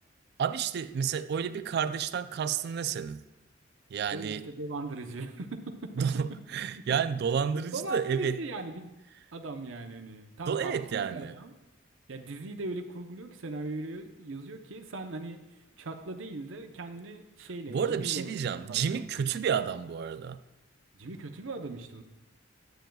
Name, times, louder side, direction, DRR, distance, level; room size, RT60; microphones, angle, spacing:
voice 1, 0.4-3.2 3.9-4.5 6.0-8.4 10.5-11.3 17.7-20.4, right 7 dB, 55° right, 0.4 m, -30 dB
voice 2, 4.1-6.0 7.5-8.9 9.3-11.5 12.1-18.3 18.7-19.3 20.9-22.0, right 2 dB, 85° right, 0.8 m, -39 dB
11.5 x 8.9 x 2.3 m
head